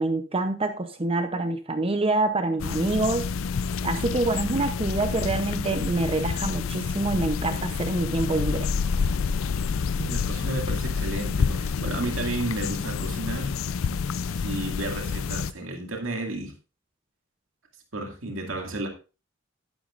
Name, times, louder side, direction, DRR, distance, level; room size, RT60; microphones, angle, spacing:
voice 1, 0.0-3.3 3.8-8.7, right 2 dB, 30° right, 0.7 m, -26 dB
sound 1, 2.6-15.5, left 5 dB, 80° left, 0.4 m, -28 dB
voice 2, 10.0-13.6 14.3-16.5 17.9-18.9, right 2 dB, 75° right, 2.3 m, -32 dB
11.5 x 11.5 x 2.5 m
head